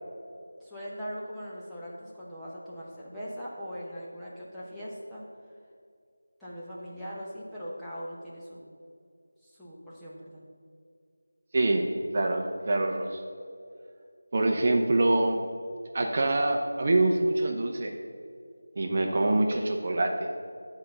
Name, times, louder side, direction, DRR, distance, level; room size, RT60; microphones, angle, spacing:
voice 1, 0.6-5.2 6.4-8.7 9.4-10.4, equal, ahead, -11 dB, 0.9 m, -40 dB
voice 2, 11.5-11.9 12.1-13.2 14.3-15.4 15.9-17.9 18.8-20.3, right 2 dB, 40° right, 2 dB, 0.6 m, -25 dB
9.3 x 4.0 x 6.7 m, 2.3 s
figure-of-eight pair, 170°, 0 cm